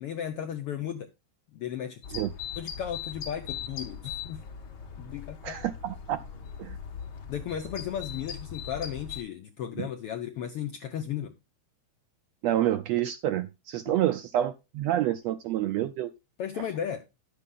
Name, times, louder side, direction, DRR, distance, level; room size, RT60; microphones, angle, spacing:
voice 1, 0.0-1.1 1.5-2.0 2.6-4.4 5.0-5.6 7.3-11.3 13.9-14.0 16.4-17.0, left 9 dB, 80° left, 1.3 m, -35 dB
sound 1, 2.0-9.2, left 8 dB, 55° left, 1.3 m, -40 dB
voice 2, 5.4-6.2 6.6-6.8 9.8-9.9 12.4-16.1, right 12 dB, 80° right, 1.6 m, -28 dB
11.0 x 6.9 x 3.8 m
omnidirectional pair, 3.5 m